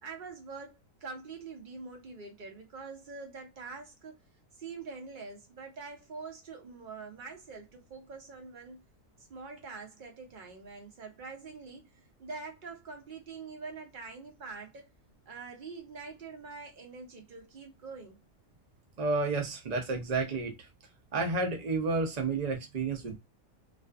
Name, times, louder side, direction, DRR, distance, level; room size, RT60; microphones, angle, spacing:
voice 1, 0.0-4.2 4.6-8.8 9.3-14.9 15.3-18.2, right 4 dB, 45° right, 0.7 m, -45 dB
voice 2, 19.0-20.7 21.1-23.2, right 3 dB, 85° right, 0.3 m, -31 dB
2.4 x 2.3 x 2.3 m
omnidirectional pair, 1.5 m